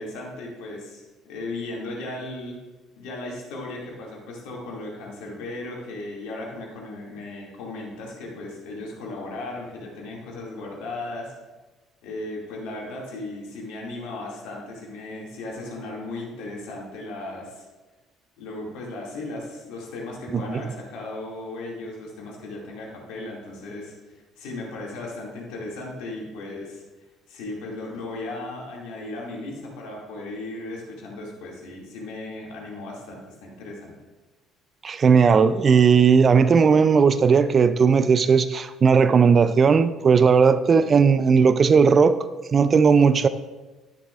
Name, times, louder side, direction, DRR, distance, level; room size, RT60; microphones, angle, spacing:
voice 1, 0.0-2.6 3.0-11.3 12.0-17.7 18.4-26.8 27.3-33.9, left 2 dB, 65° left, -2 dB, 2.4 m, -36 dB
voice 2, 34.8-42.2 42.5-43.3, right 5 dB, 40° right, 13 dB, 0.4 m, -17 dB
10.5 x 10.0 x 2.5 m, 1.2 s
figure-of-eight pair, 50°, 0 cm